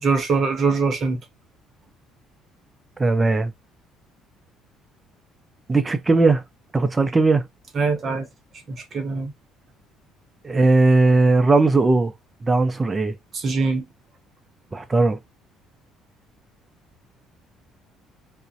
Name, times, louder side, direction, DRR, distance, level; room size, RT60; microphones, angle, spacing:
voice 1, 0.0-1.2 7.7-8.3 8.7-9.3 13.3-13.8, right 4 dB, 35° right, 0.7 m, -22 dB
voice 2, 3.0-3.5 5.7-6.4 6.7-7.4 8.1-8.2 10.4-12.1 12.4-13.1 14.7-15.2, right 3 dB, 15° right, 0.3 m, -18 dB
2.4 x 2.0 x 2.5 m
cardioid pair, 160°, 0 cm